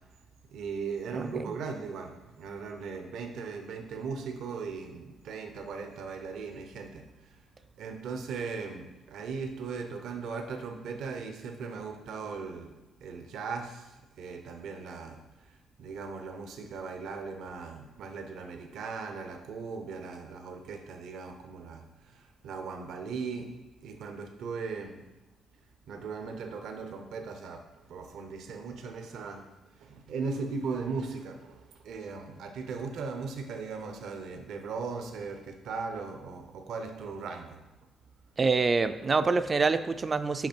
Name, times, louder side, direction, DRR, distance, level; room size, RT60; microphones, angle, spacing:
voice 1, 0.5-7.4 7.8-12.7 13.0-15.2 15.5-23.5 23.8-25.0 25.9-27.6 27.9-37.6, right 5 dB, 75° right, 5 dB, 0.8 m, -38 dB
voice 2, 1.1-1.5 38.4-40.5, right 4 dB, 35° right, 11 dB, 0.4 m, -26 dB
5.8 x 5.0 x 4.4 m, 1.0 s
cardioid pair, 90°, 0 cm